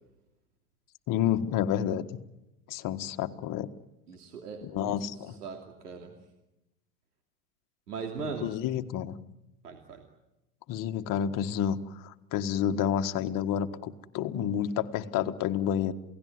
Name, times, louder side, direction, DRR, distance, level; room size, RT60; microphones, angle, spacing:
voice 1, 1.1-2.1 2.7-3.7 4.6-5.4 8.4-9.2 10.7-15.9, left 9 dB, 45° left, 8 dB, 1.7 m, -29 dB
voice 2, 4.1-6.1 7.9-8.5 9.6-10.0, right 5 dB, 90° right, 3 dB, 2.9 m, -40 dB
28.5 x 18.0 x 9.6 m, 0.97 s
hypercardioid pair, 95°, 45 cm